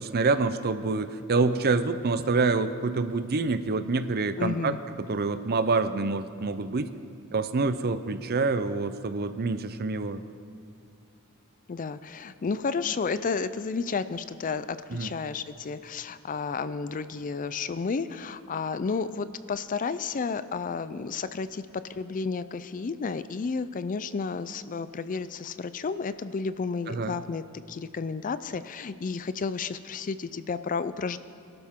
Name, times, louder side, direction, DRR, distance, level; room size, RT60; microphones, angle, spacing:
voice 1, 0.0-4.8 5.1-6.9 7.3-10.2 14.9-15.1 26.9-27.2, right 3 dB, 45° right, 12 dB, 0.6 m, -26 dB
voice 2, 4.4-4.8 11.7-31.2, left 5 dB, 40° left, 14 dB, 0.4 m, -32 dB
23.0 x 12.0 x 3.7 m, 2.4 s
head